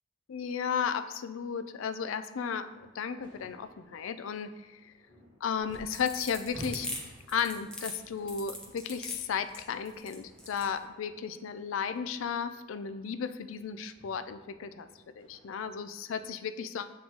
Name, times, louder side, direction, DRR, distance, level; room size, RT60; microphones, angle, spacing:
voice 1, 0.3-4.9 5.4-6.9 7.3-14.9 15.2-16.9, left 7 dB, 80° left, 12 dB, 0.4 m, -34 dB
sound 1, 2.6-16.3, equal, 25° left, 1.6 m, -54 dB
sound 2, 5.6-10.7, left 1 dB, 5° left, 0.7 m, -41 dB
8.0 x 3.1 x 3.8 m, 1.2 s
head